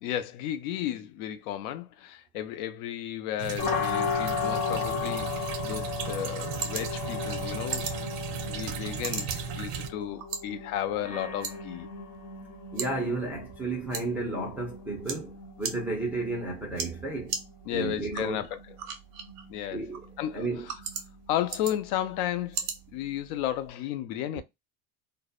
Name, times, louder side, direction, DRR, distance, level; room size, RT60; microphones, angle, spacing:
voice 1, 0.0-7.9 8.4-11.9 17.7-18.7 19.5-19.9 20.2-20.5 21.3-24.4, left 11 dB, 75° left, 0.6 m, -33 dB
sound 1, 3.4-9.9, right 6 dB, 65° right, 0.6 m, -36 dB
sound 2, 3.6-23.4, left 6 dB, 40° left, 0.8 m, -37 dB
sound 3, 5.7-23.7, right 6 dB, 90° right, 0.9 m, -41 dB
voice 2, 12.7-17.4 17.7-18.4 19.7-20.0 20.3-20.7, right 2 dB, 5° right, 0.3 m, -32 dB
2.6 x 2.1 x 2.3 m
cardioid pair, 150°, 44 cm